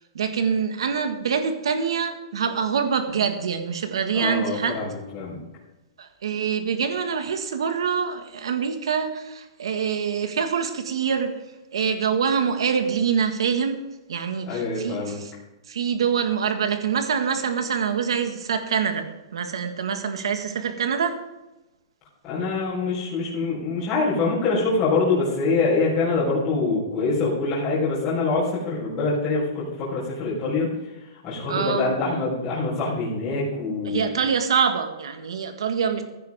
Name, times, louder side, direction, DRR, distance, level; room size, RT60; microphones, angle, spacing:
voice 1, 0.1-4.8 6.0-11.4 11.7-13.8 14.1-15.3 15.7-19.1 19.3-21.2 31.5-31.9 33.9-36.0, right 6 dB, 85° right, 7 dB, 1.8 m, -25 dB
voice 2, 4.1-5.4 14.5-15.2 22.2-30.9 31.2-34.1, left 3 dB, 20° left, -9 dB, 4.1 m, -25 dB
15.5 x 10.5 x 3.6 m, 1.0 s
hypercardioid pair, 175°, 3 cm